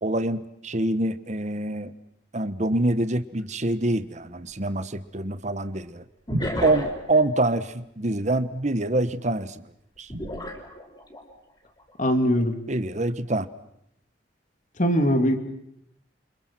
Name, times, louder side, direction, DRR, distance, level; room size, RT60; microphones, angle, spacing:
voice 1, 0.0-1.9 2.3-6.0 6.6-9.6 10.0-10.1 12.7-13.5, right 2 dB, 40° right, 12 dB, 1.3 m, -25 dB
sound 1, 3.4-3.5 6.3-7.2 10.1-11.2 11.8-12.0, equal, 25° left, 5.3 m, -31 dB
voice 2, 12.0-12.6 14.8-15.4, equal, 45° left, 6 dB, 2.9 m, -21 dB
30.0 x 25.5 x 6.2 m, 0.77 s
head